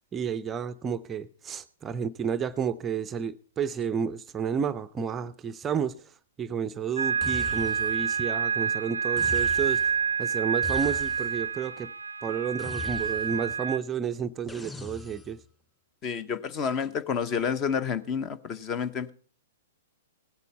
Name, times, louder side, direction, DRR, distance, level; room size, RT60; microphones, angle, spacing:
voice 1, 0.1-6.1 6.4-9.9 10.2-11.9 12.2-15.4, right 7 dB, 20° right, 12 dB, 0.5 m, -31 dB
sound 1, 7.0-13.8, right 6 dB, 75° right, 0.5 m, -28 dB
sound 2, 7.2-8.1 9.2-10.0 10.6-11.5 12.6-13.5 14.5-15.4, left 3 dB, 10° left, 2.5 m, -41 dB
voice 2, 16.0-19.1, left 6 dB, 25° left, 14 dB, 0.9 m, -29 dB
17.0 x 8.2 x 5.4 m, 0.43 s
figure-of-eight pair, 110°, 0 cm